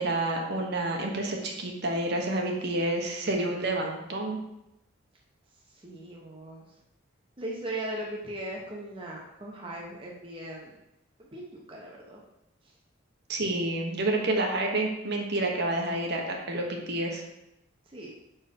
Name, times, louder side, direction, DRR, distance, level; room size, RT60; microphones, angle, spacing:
voice 1, 0.0-4.4 13.3-17.2, right 2 dB, 50° right, 1 dB, 1.1 m, -29 dB
voice 2, 5.7-6.6 7.4-10.8 11.2-12.2 12.6-12.7 17.9-18.1, right 1 dB, 25° right, -2 dB, 0.9 m, -38 dB
6.3 x 4.5 x 5.2 m, 0.87 s
head